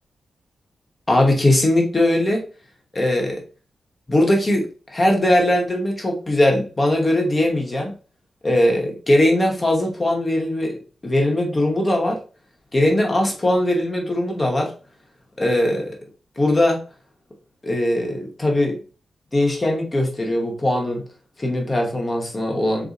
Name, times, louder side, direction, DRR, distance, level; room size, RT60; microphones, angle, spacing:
voice 1, 1.1-2.4 2.9-3.4 4.1-7.9 8.4-12.2 12.7-14.7 15.4-16.0 16.4-16.8 17.6-18.8 19.3-21.0 21.4-22.9, left 1 dB, 20° left, 1 dB, 0.8 m, -20 dB
4.0 x 2.0 x 3.7 m, 0.36 s
wide cardioid pair, 175°, 0 cm